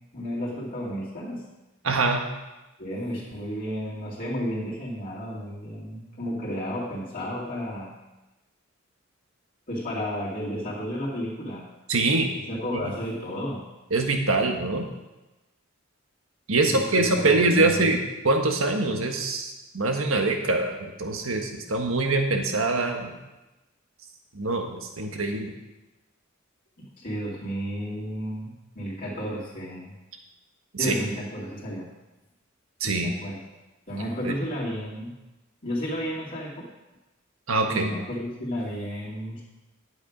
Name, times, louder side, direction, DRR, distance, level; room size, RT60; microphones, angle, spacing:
voice 1, 0.1-1.4 2.8-7.9 9.7-11.6 12.5-13.6 16.6-17.9 27.0-29.9 30.8-31.9 32.8-33.4 33.9-35.1 35.6-36.7 37.7-39.4, equal, 45° left, -8 dB, 2.5 m, -32 dB
voice 2, 1.8-2.2 11.9-12.3 13.9-14.9 16.5-18.0 18.2-23.1 24.3-25.5 30.8-30.9 32.8-33.1 34.2-34.3 37.5-37.9, right 3 dB, 80° right, 4 dB, 1.4 m, -24 dB
10.5 x 8.0 x 5.1 m, 1.0 s
head